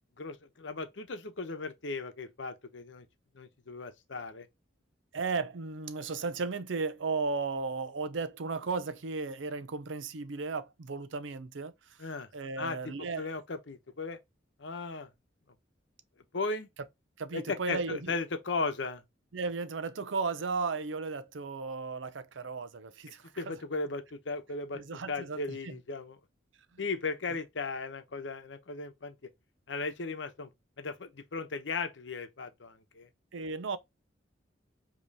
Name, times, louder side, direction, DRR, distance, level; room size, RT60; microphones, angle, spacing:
voice 1, 0.2-3.1 3.3-4.5 12.0-12.3 12.6-14.2 14.6-15.1 16.3-16.7 17.3-19.0 23.4-24.8 25.1-26.2 26.8-29.1 29.7-30.5 30.8-33.1, left 3 dB, 75° left, 0.9 m, -36 dB
voice 2, 5.1-13.3 17.2-18.2 19.3-23.6 24.7-25.7 33.3-33.8, right 4 dB, 90° right, 0.6 m, -35 dB
5.2 x 3.0 x 2.8 m
head